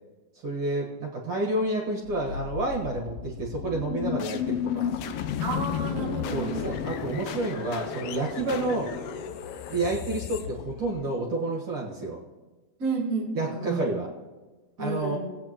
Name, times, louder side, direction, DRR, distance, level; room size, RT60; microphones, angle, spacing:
voice 1, 0.4-4.9 6.3-8.9 9.7-12.2 13.3-14.1 14.8-15.2, right 2 dB, 50° right, -3 dB, 2.1 m, -29 dB
sound 1, 2.1-11.2, left 8 dB, 80° left, 1.3 m, -33 dB
voice 2, 5.4-6.8 12.8-13.8 14.8-15.2, right 3 dB, 30° right, -2 dB, 1.7 m, -31 dB
18.5 x 8.7 x 3.0 m, 1.2 s
omnidirectional pair, 3.4 m